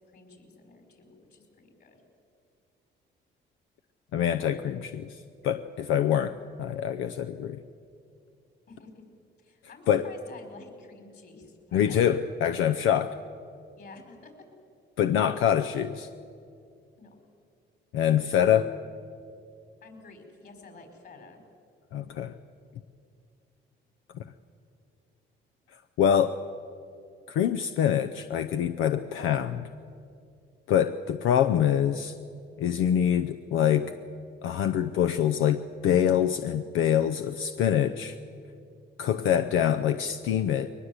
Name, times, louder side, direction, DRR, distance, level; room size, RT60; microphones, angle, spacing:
voice 1, 0.0-2.0 8.7-9.0 9.4-12.4 13.8-14.3 15.2-15.6 17.0-17.2 19.8-21.4, left 3 dB, 55° left, 4 dB, 5.3 m, -50 dB
voice 2, 4.1-7.6 9.9-10.1 11.7-13.2 15.0-16.1 17.9-18.7 21.9-22.3 26.0-26.4 27.3-29.7 30.7-32.1 32.6-33.9 34.4-38.2 39.0-40.7, left 9 dB, 90° left, 9 dB, 0.7 m, -25 dB
22.0 x 20.0 x 8.0 m, 2.5 s
cardioid pair, 90°, 20 cm